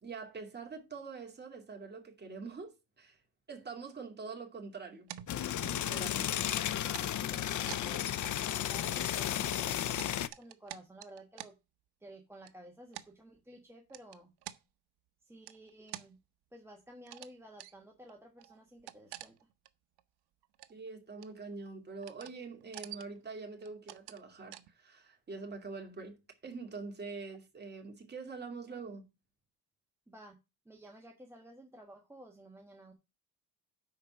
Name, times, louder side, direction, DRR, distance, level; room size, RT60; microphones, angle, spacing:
voice 1, 0.0-3.2 3.5-5.1 5.4-6.3 20.7-26.2 26.4-29.1, right 4 dB, 25° right, 2.6 m, -45 dB
sound 1, 5.1-6.1 6.5-8.7 9.0-9.1 9.6-11.5 12.4-12.5 12.9-13.1 13.9-14.6 15.5-16.1 17.0-17.3 17.6-17.7 18.1-18.2 18.4-19.7 20.0-20.1 20.4-20.9 21.2-21.7 22.0-22.4 22.6-23.2 23.6-24.2 24.5-24.7, right 14 dB, 80° right, 0.9 m, -48 dB
sound 2, 5.3-10.3, left 11 dB, 50° left, 0.7 m, -33 dB
voice 2, 6.1-11.5 12.0-14.3 15.2-16.2 16.5-19.3 30.1-30.4 30.6-32.9, right 1 dB, 5° right, 1.4 m, -54 dB
10.5 x 4.4 x 6.1 m
cardioid pair, 135°, 40 cm